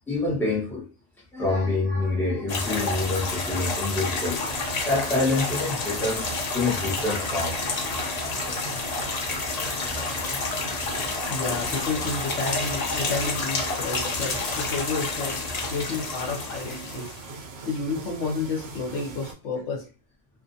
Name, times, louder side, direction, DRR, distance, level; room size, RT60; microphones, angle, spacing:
voice 1, 0.1-0.8 1.3-4.6 4.9-7.6 8.4-8.6 9.8-9.9 10.8-11.1 11.5-11.6, left 2 dB, ahead, -4 dB, 0.9 m, -27 dB
sound 1, 2.5-17.3, left 3 dB, 55° left, 0.4 m, -29 dB
sound 2, 4.4-19.3, right 3 dB, 65° right, 0.7 m, -41 dB
voice 2, 11.3-15.4 15.7-17.1 17.6-19.8, left 4 dB, 70° left, -1 dB, 1.0 m, -30 dB
2.4 x 2.4 x 2.6 m, 0.35 s
omnidirectional pair, 1.3 m